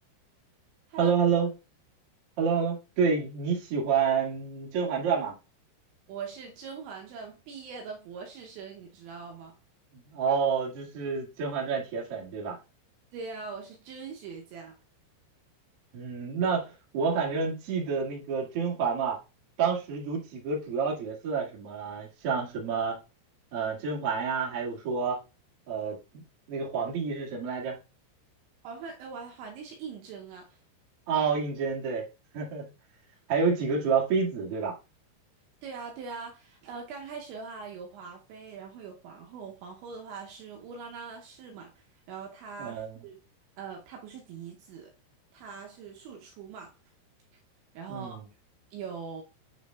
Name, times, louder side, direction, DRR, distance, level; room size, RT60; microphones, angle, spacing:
voice 1, 1.0-1.5 2.4-5.3 9.9-12.6 15.9-19.2 19.6-23.0 23.5-25.2 25.7-26.2 26.5-27.8 31.1-32.1 32.3-32.6 33.3-34.7 42.6-43.0 47.9-48.3, right 5 dB, 50° right, 1.8 m, -29 dB
voice 2, 6.1-9.6 13.1-14.8 28.6-30.6 35.6-42.8 43.0-43.2 43.6-44.9 45.3-46.7 47.7-48.2 48.7-49.2, right 5 dB, 80° right, 2.8 m, -42 dB
9.1 x 5.0 x 2.3 m
omnidirectional pair, 5.7 m